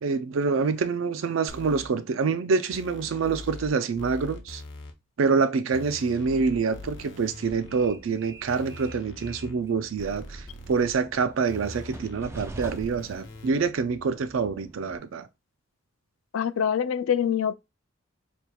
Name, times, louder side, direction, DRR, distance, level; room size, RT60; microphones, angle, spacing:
voice 1, 0.0-4.6 5.2-15.3, right 5 dB, 80° right, 0.4 m, -26 dB
sound 1, 1.5-1.9 2.7-3.7 4.0-4.9 5.7-7.9 8.5-9.5 10.0-10.9 11.5-13.5, left 1 dB, 60° left, 0.7 m, -43 dB
Train, 6.6-15.0, right 1 dB, 15° right, 0.4 m, -46 dB
voice 2, 16.3-17.5, left 8 dB, 85° left, 0.3 m, -25 dB
4.4 x 3.5 x 2.3 m
head